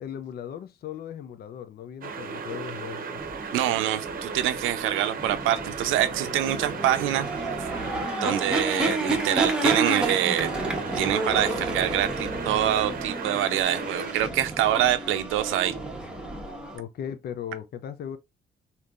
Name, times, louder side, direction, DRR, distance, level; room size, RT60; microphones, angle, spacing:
voice 1, 0.0-3.2 16.7-18.2, left 9 dB, 55° left, 0.4 m, -37 dB
sound 1, 2.0-14.1, right 5 dB, 45° right, 0.8 m, -36 dB
sound 2, 3.2-16.8, right 1 dB, 5° right, 1.0 m, -31 dB
voice 2, 3.5-7.3 8.2-10.6 10.9-15.7, right 12 dB, 90° right, 0.5 m, -25 dB
3.5 x 2.8 x 2.3 m
cardioid pair, 90°, 20 cm